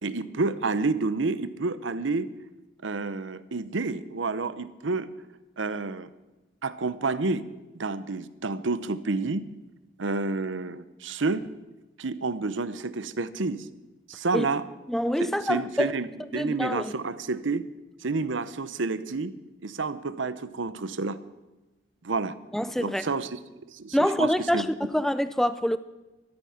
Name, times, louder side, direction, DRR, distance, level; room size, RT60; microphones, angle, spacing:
voice 1, 0.0-2.3 2.8-5.1 5.6-6.1 6.6-7.4 7.8-9.4 10.0-11.4 12.0-13.7 14.1-14.6 15.2-16.1 16.3-17.7 18.0-19.3 19.6-21.2 22.0-22.4 22.8-23.4 23.7-24.7, right 3 dB, 80° right, 14 dB, 0.8 m, -29 dB
voice 2, 14.9-15.9 16.3-16.9 22.5-23.0 23.9-25.8, equal, ahead, 13 dB, 0.5 m, -26 dB
14.0 x 13.0 x 5.8 m, 1.1 s
head